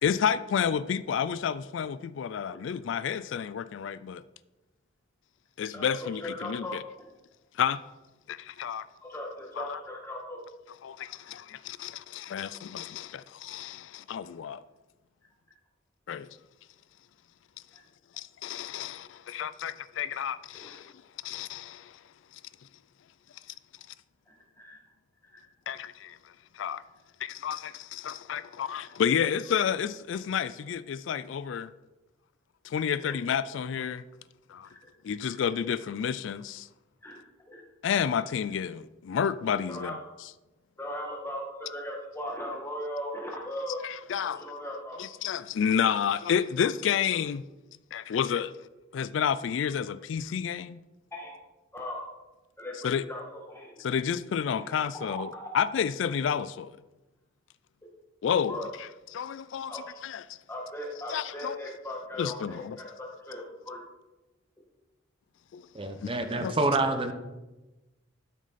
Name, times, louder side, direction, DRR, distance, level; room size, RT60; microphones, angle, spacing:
voice 1, 0.0-4.2 5.6-6.8 7.5-7.8 8.3-8.9 9.6-9.8 10.8-14.6 16.1-16.3 18.2-20.9 21.2-22.0 22.3-22.4 25.7-26.2 26.5-26.8 27.2-31.7 32.6-34.0 34.5-34.7 35.0-36.7 37.8-40.0 43.8-44.5 45.0-47.4 47.9-48.5 48.9-50.8 52.7-53.1 53.8-56.8 58.2-60.4 61.1-61.6 62.2-62.8 65.5-65.7 66.0-66.5, left 8 dB, 75° left, 0.3 m, -30 dB
voice 2, 5.7-6.8 9.0-10.4 20.6-20.7 24.6-24.8 32.9-33.2 37.0-37.2 37.5-37.6 39.7-40.0 40.8-43.8 44.3-45.1 51.1-51.4 51.7-52.1 52.6-53.7 54.5-55.5 58.5-58.7 59.7-60.0 60.5-63.8, left 1 dB, 15° left, 1.8 m, -38 dB
voice 3, 65.7-67.1, right 2 dB, 30° right, 1.0 m, -27 dB
12.0 x 6.3 x 4.1 m
head